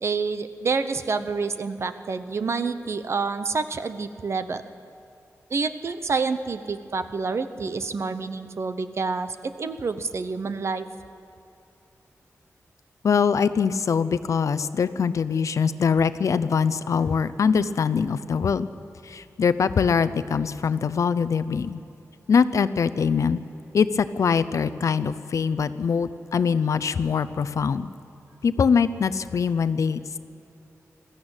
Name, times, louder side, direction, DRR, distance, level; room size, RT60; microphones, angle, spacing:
voice 1, 0.0-4.6 5.5-10.9, right 4 dB, 55° right, 11 dB, 0.9 m, -28 dB
voice 2, 13.0-18.7 19.0-21.8 22.3-23.4 23.7-27.9 28.4-30.2, left 6 dB, 75° left, 14 dB, 0.6 m, -23 dB
21.0 x 14.0 x 9.0 m, 2.8 s
wide cardioid pair, 130°, 5 cm